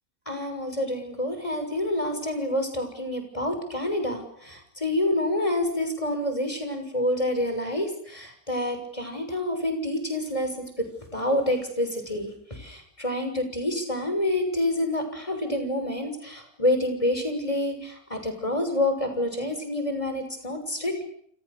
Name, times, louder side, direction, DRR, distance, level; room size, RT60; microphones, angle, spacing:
voice 1, 0.3-10.7 11.1-12.3 12.6-21.0, left 1 dB, 25° left, 6 dB, 6.6 m, -28 dB
29.0 x 28.0 x 7.0 m, 0.68 s
omnidirectional pair, 1.5 m